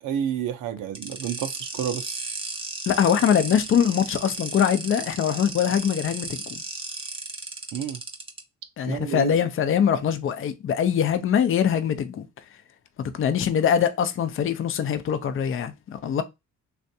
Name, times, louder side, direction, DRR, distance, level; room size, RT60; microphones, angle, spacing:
voice 1, 0.0-2.2 7.7-8.0 8.9-9.3, right 9 dB, 85° right, 0.6 m, -30 dB
sound 1, 1.0-8.4, right 3 dB, 20° right, 0.8 m, -35 dB
voice 2, 2.9-6.6 8.8-12.3 13.1-16.2, left 8 dB, 45° left, 0.5 m, -23 dB
3.3 x 2.5 x 2.7 m
cardioid pair, 90°, 30 cm